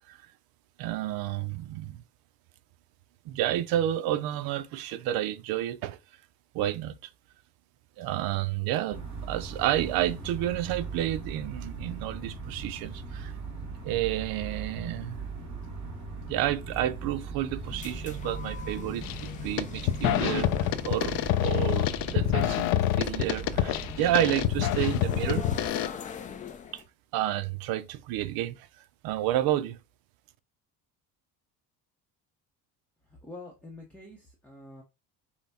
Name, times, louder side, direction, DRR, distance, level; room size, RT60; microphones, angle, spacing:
voice 1, 0.8-2.0 3.3-6.0 6.5-6.9 8.0-13.3 13.8-15.2 16.3-19.0 19.4-25.5 26.7-26.8 27.1-28.7 29.0-29.8, right 13 dB, 70° right, 0.6 m, -30 dB
sound 1, 8.9-25.7, right 4 dB, 50° right, 2.3 m, -39 dB
sound 2, 17.5-26.8, left 7 dB, 20° left, 0.3 m, -42 dB
sound 3, 19.0-19.3 19.6-25.9, left 12 dB, 70° left, 0.6 m, -27 dB
voice 2, 33.0-34.8, left 2 dB, 5° left, 0.7 m, -46 dB
5.7 x 2.1 x 4.2 m
cardioid pair, 160°, 37 cm